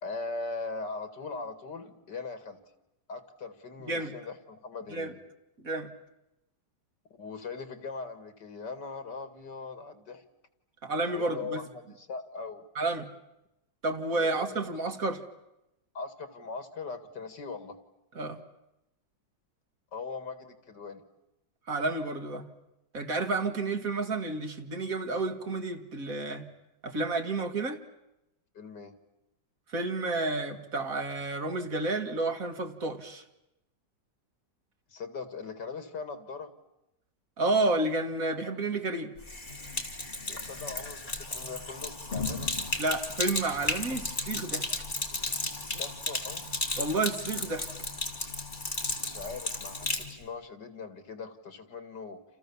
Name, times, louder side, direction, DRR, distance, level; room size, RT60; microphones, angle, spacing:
voice 1, 0.0-2.6 3.1-5.2 7.2-10.2 11.1-12.7 14.1-14.6 15.0-15.1 15.9-17.8 19.9-21.0 28.5-29.0 34.9-36.5 40.3-42.5 43.9-44.1 45.7-46.4 49.0-52.2, left 4 dB, 75° left, 10 dB, 2.8 m, -40 dB
voice 2, 10.8-11.6 12.8-13.1 13.8-15.2 18.2-18.4 21.7-22.5 22.9-26.5 26.8-27.8 29.7-33.2 37.4-39.1 42.8-44.7 46.8-47.7, right 2 dB, 50° right, 5 dB, 2.4 m, -30 dB
Sink (filling or washing), 39.2-50.1, left 2 dB, 25° left, 3.1 m, -34 dB
29.0 x 28.5 x 7.2 m, 0.89 s
omnidirectional pair, 1.9 m